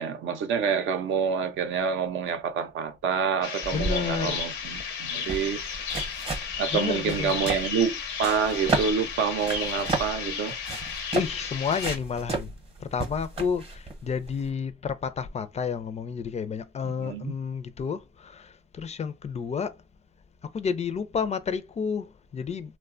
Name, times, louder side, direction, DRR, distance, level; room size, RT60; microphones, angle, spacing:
voice 1, 0.0-5.9 6.6-10.6 17.0-17.3, right 6 dB, 75° right, 0.5 m, -27 dB
sound 1, 3.4-12.0, left 6 dB, 90° left, 0.6 m, -34 dB
sound 2, 3.6-14.5, right 3 dB, 30° right, 0.8 m, -33 dB
voice 2, 3.7-4.4 6.7-7.4 11.1-12.5 12.8-19.8 20.4-22.7, left 6 dB, 35° left, 0.4 m, -31 dB
3.0 x 2.2 x 2.4 m
cardioid pair, 90°, 20 cm